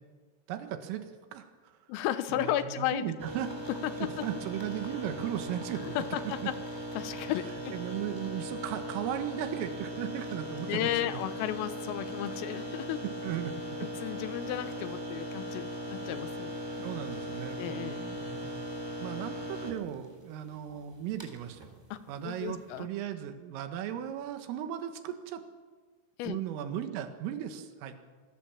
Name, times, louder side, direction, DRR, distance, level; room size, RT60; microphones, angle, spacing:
voice 1, 0.5-1.7 2.3-3.5 4.0-6.0 7.7-11.2 13.0-13.5 16.8-18.6 19.0-21.7 22.1-25.4 26.2-27.9, right 10 dB, 85° right, 7 dB, 4.2 m, -37 dB
voice 2, 1.9-3.1 3.8-4.3 5.8-6.5 7.0-7.8 10.7-13.0 13.8-16.9 17.6-18.0 21.9-22.9 26.2-26.4, left 13 dB, 90° left, 12 dB, 3.7 m, -34 dB
sound 1, 3.2-22.8, equal, 5° right, 2.8 m, -39 dB
27.5 x 20.0 x 7.4 m, 1.4 s
omnidirectional pair, 5.9 m